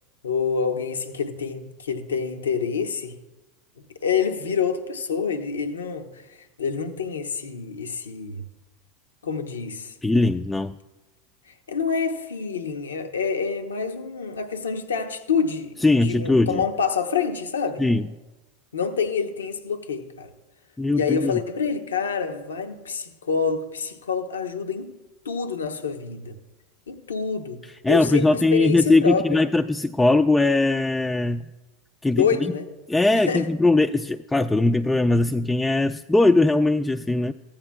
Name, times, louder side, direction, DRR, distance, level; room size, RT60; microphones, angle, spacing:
voice 1, 0.2-3.1 3.8-8.4 9.2-9.9 11.7-17.8 18.7-20.3 20.9-24.9 25.2-26.3 26.9-27.6 27.9-29.4 32.2-32.7 33.1-33.5, left 6 dB, 85° left, 0.7 m, -27 dB
voice 2, 10.0-10.8 15.8-16.6 17.8-18.1 20.8-21.4 27.8-31.4 32.0-32.3 32.9-37.3, left 2 dB, 10° left, 0.3 m, -20 dB
15.0 x 8.8 x 2.2 m
hypercardioid pair, 90°, 0 cm